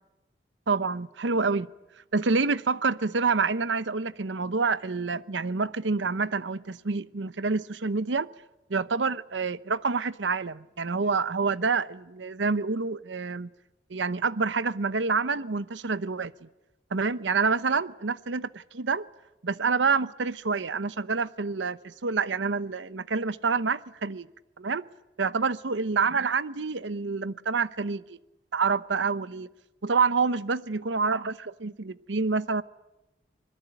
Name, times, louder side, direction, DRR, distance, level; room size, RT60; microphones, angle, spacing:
voice 1, 0.7-1.7 2.1-8.3 8.7-13.5 13.9-16.5 16.9-19.1 19.4-24.3 24.6-24.8 25.2-28.2 28.5-29.5 29.8-32.6, right 4 dB, 90° right, 0.8 m, -27 dB
26.0 x 21.5 x 9.0 m
head